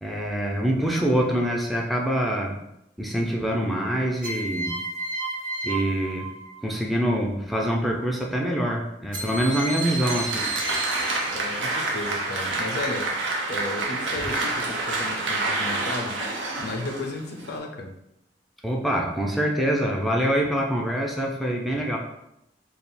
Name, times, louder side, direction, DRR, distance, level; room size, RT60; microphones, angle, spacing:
voice 1, 0.0-2.6 3.0-4.8 5.6-6.3 6.6-10.5 18.6-22.0, equal, ahead, -1 dB, 0.4 m, -25 dB
sound 1, 4.2-6.9 9.1-11.7, right 2 dB, 50° right, 0.7 m, -33 dB
Applause, 9.5-17.6, right 2 dB, 80° right, 0.8 m, -28 dB
voice 2, 11.3-13.1 13.5-16.2 16.6-18.0, left 2 dB, 60° left, 4 dB, 0.5 m, -34 dB
3.3 x 2.3 x 4.2 m, 0.83 s
head